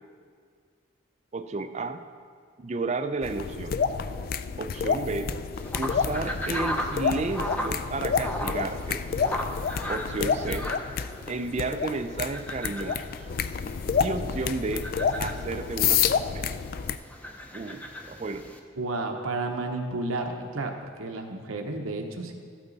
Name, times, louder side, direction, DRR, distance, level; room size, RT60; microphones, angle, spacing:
voice 1, 1.3-2.0 2.6-3.8 4.6-5.3 5.8-9.0 9.9-10.7 11.3-13.1 14.0-14.9 15.2-16.6 17.5-18.5, right 3 dB, 30° right, 9 dB, 0.4 m, -32 dB
sound 1, 3.2-17.0, left 6 dB, 45° left, 0.3 m, -29 dB
sound 2, 5.5-18.6, equal, 5° left, 0.6 m, -37 dB
voice 2, 18.8-20.7 21.0-22.3, right 2 dB, 85° right, 3 dB, 0.9 m, -31 dB
13.5 x 8.8 x 4.0 m, 2.1 s
head